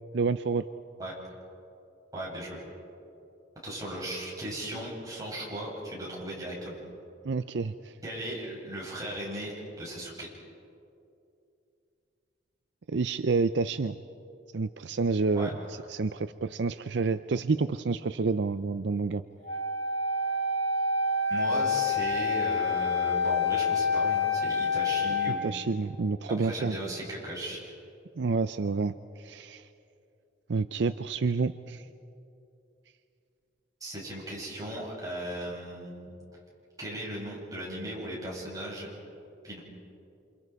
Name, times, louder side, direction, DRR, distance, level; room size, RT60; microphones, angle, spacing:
voice 1, 0.1-0.7 7.2-8.0 12.9-14.0 14.5-19.2 25.3-26.7 28.2-29.7 30.5-31.9, right 4 dB, 65° right, 11 dB, 0.5 m, -29 dB
voice 2, 2.1-2.6 3.6-6.8 8.0-10.3 15.4-15.5 21.3-25.6 26.4-27.7 33.8-36.1 36.8-38.9 39.4-39.6, right 1 dB, 20° right, -5 dB, 7.8 m, -37 dB
Wind instrument woodwind instrument, 19.4-25.4, left 4 dB, 40° left, 4.4 m, -27 dB
28.0 x 28.0 x 4.8 m, 2.6 s
head